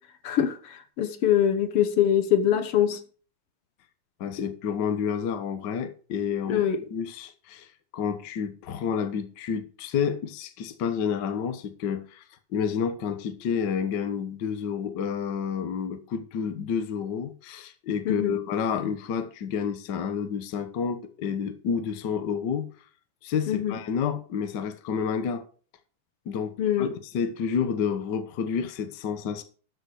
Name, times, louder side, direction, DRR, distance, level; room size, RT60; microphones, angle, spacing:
voice 1, 0.2-3.0 6.5-6.8 18.0-18.4 23.5-23.8 26.6-26.9, left 9 dB, 65° left, 1.6 m, -24 dB
voice 2, 4.2-6.6 6.9-7.7 7.9-12.2 12.5-22.7 23.2-25.5 26.2-29.4, left 7 dB, 80° left, 0.9 m, -29 dB
13.0 x 7.3 x 4.8 m
omnidirectional pair, 3.8 m